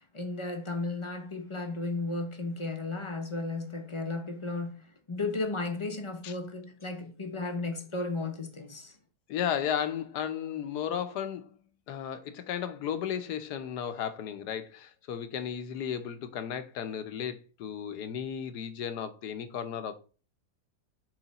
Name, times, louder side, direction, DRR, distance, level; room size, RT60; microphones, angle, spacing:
voice 1, 0.0-8.9, left 3 dB, 40° left, 0.4 m, -34 dB
voice 2, 9.3-11.6 11.9-19.9, left 8 dB, 85° left, 1.3 m, -34 dB
7.7 x 3.3 x 4.1 m
omnidirectional pair, 1.7 m